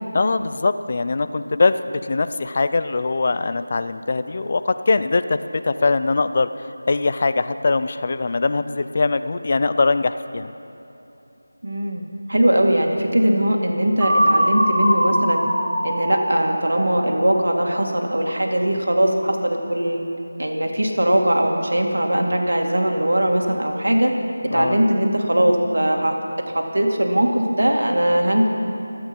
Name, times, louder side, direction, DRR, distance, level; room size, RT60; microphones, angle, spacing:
voice 1, 0.1-6.5 6.9-10.5 24.5-24.9, left 3 dB, 40° left, 11 dB, 0.5 m, -22 dB
voice 2, 11.6-15.4 15.8-20.0 20.4-24.1 24.5-26.2 26.5-28.5, right 1 dB, 75° right, 2 dB, 2.2 m, -20 dB
sound 1, 14.0-17.9, equal, 5° right, 1.6 m, -22 dB
26.5 x 8.8 x 5.3 m, 2.8 s
figure-of-eight pair, 170°, 0 cm